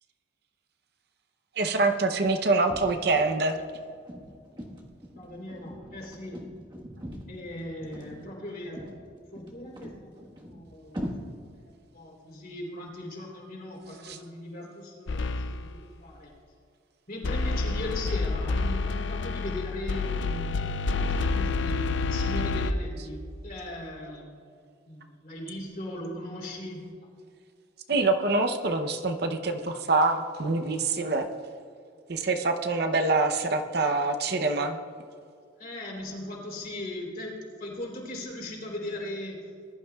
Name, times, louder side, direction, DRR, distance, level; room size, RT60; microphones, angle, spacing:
voice 1, 1.6-3.6 14.0-14.2 27.9-31.3 32.1-34.8, right 3 dB, 55° right, 7 dB, 0.7 m, -25 dB
sound 1, 2.7-11.1, equal, 25° right, 1.4 m, -42 dB
voice 2, 5.2-6.5 7.3-9.0 9.3-11.4 11.6-16.3 17.1-24.4 24.8-26.9 35.6-39.6, left 1 dB, 45° left, -2 dB, 3.4 m, -39 dB
sound 2, 15.1-15.8 17.2-22.7, left 3 dB, 65° left, 0.5 m, -28 dB
20.0 x 12.0 x 2.3 m, 2.3 s
head